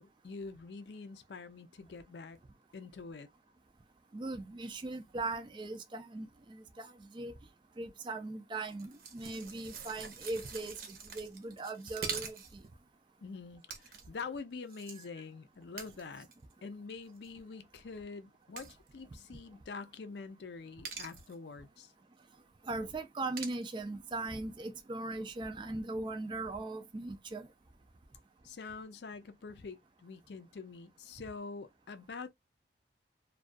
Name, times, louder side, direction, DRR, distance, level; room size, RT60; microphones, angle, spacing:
voice 1, 0.0-2.4 2.7-3.3 13.2-16.3 16.6-21.9 28.4-32.3, left 4 dB, 70° left, 0.5 m, -45 dB
voice 2, 4.1-7.3 7.8-12.6 22.7-27.5, right 2 dB, 25° right, 0.3 m, -39 dB
sound 1, 8.7-12.7 13.7-14.2 14.7-15.1 15.8-16.5 17.1-17.3 18.6-18.9 20.8-21.3 23.4-23.7, right 5 dB, 55° right, 0.7 m, -44 dB
2.3 x 2.3 x 2.4 m
head